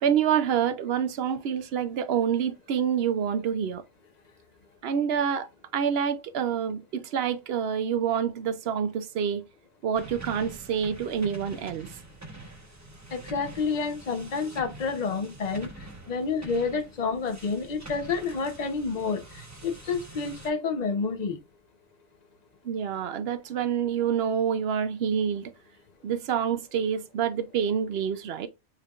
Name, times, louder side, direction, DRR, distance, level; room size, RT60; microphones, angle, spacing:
voice 1, 0.0-3.8 4.8-5.5 5.7-9.4 9.8-11.9 22.6-25.5 26.0-28.5, right 8 dB, 60° right, 0.7 m, -27 dB
sound 1, 9.9-20.5, right 2 dB, 15° right, 0.9 m, -45 dB
voice 2, 13.1-15.7 16.1-21.4, left 4 dB, 40° left, 0.7 m, -29 dB
6.7 x 3.3 x 2.4 m
omnidirectional pair, 1.4 m